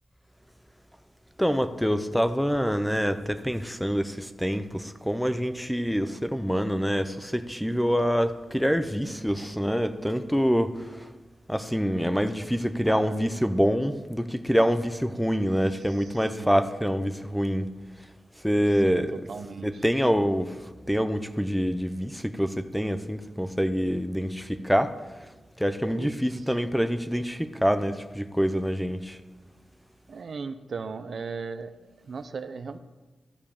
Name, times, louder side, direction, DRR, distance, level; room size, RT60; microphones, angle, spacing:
voice 1, 1.4-11.1 11.5-17.7 18.4-19.1 19.6-20.6 20.9-24.9 25.6-29.2, equal, ahead, 10 dB, 0.6 m, -26 dB
voice 2, 12.9-13.2 15.9-16.7 18.7-19.0 19.3-19.8 25.4-25.5 25.9-26.1 26.4-26.5 30.1-32.8, right 5 dB, 60° right, 11 dB, 0.5 m, -38 dB
13.0 x 5.0 x 7.1 m, 1.2 s
wide cardioid pair, 115°, 0 cm